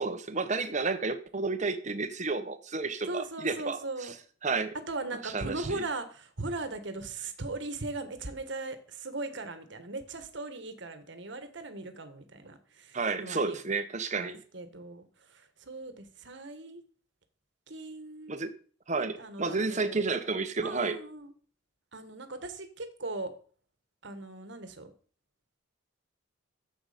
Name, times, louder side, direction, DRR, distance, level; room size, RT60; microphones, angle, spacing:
voice 1, 0.0-4.1 4.4-4.7 5.2-5.8 12.9-14.4 18.3-18.5 18.9-21.0, right 4 dB, 35° right, 10 dB, 1.0 m, -31 dB
voice 2, 3.1-4.1 4.9-13.6 14.2-16.8 17.7-18.5 18.9-20.0 20.6-21.3 21.9-23.3 24.0-24.9, right 2 dB, 60° right, 8 dB, 1.5 m, -39 dB
12.0 x 7.8 x 5.2 m, 0.43 s
head